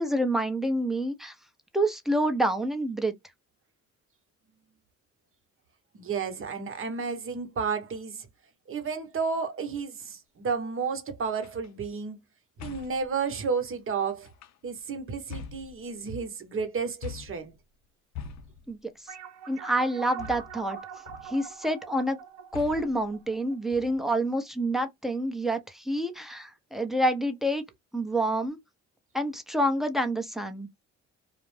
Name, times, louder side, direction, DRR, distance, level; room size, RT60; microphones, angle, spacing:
voice 1, 0.0-1.3 1.7-3.1 18.7-18.8 19.5-20.8 21.2-22.2 22.5-27.6 27.9-28.6 29.1-30.7, right 1 dB, ahead, 0.6 m, -27 dB
voice 2, 5.9-8.3 8.7-12.2 12.6-14.3 14.6-17.5, right 5 dB, 45° right, 0.9 m, -32 dB
sound 1, 11.4-11.7 12.6-13.1 14.2-14.8 15.3-16.2 17.0-17.5 18.1-18.8 20.2-20.7 21.1-21.5 22.5-23.0 23.7-24.2, left 6 dB, 65° left, 0.6 m, -42 dB
sound 2, 19.1-23.9, right 7 dB, 75° right, 0.9 m, -43 dB
2.5 x 2.0 x 3.1 m
cardioid pair, 90°, 30 cm